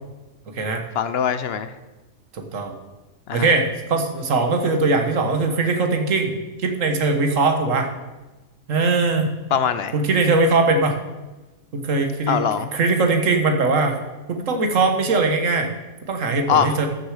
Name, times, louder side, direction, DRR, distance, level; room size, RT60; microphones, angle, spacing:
voice 1, 0.9-1.7 3.3-3.5 9.5-9.9 12.3-12.7 16.5-16.8, left 7 dB, 60° left, 12 dB, 0.8 m, -22 dB
voice 2, 2.3-2.7 3.3-7.9 8.7-9.3 9.9-11.0 11.7-12.4 12.7-14.0 14.3-15.7 16.1-16.9, right 3 dB, 80° right, 5 dB, 1.6 m, -20 dB
13.5 x 6.6 x 4.9 m, 1.1 s
omnidirectional pair, 1.3 m